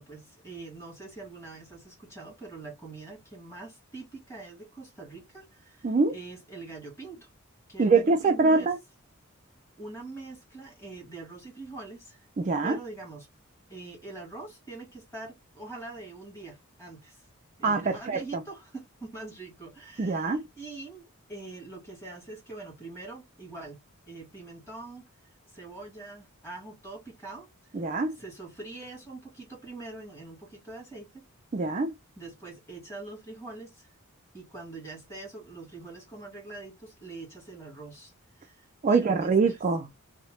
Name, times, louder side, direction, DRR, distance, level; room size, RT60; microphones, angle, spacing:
voice 1, 0.0-7.3 7.7-8.7 9.8-12.2 12.6-13.3 13.7-17.3 17.6-25.1 25.5-27.5 27.9-31.2 32.2-33.9 34.3-38.1 38.4-39.6, right 3 dB, 10° left, 1.5 m, -44 dB
voice 2, 5.8-6.1 7.8-8.8 12.4-12.8 17.6-18.4 20.0-20.4 27.7-28.2 31.5-31.9 38.8-40.0, right 4 dB, 35° right, 0.3 m, -24 dB
2.8 x 2.0 x 3.0 m
head